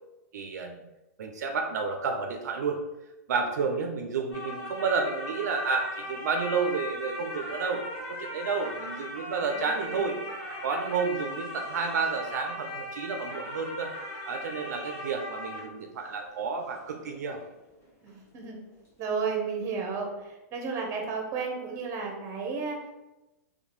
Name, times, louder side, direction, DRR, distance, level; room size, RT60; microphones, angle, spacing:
voice 1, 0.3-0.8 1.2-2.8 3.3-10.2 10.6-13.9 14.3-17.4, right 5 dB, 80° right, 4 dB, 0.3 m, -31 dB
sound 1, 4.3-18.2 18.5-18.6, left 1 dB, 25° left, 1.1 m, -39 dB
voice 2, 9.5-10.1 18.0-18.6 19.0-22.8, right 5 dB, 35° right, 1 dB, 0.7 m, -33 dB
2.6 x 2.1 x 3.0 m, 0.99 s
hypercardioid pair, 130°, 9 cm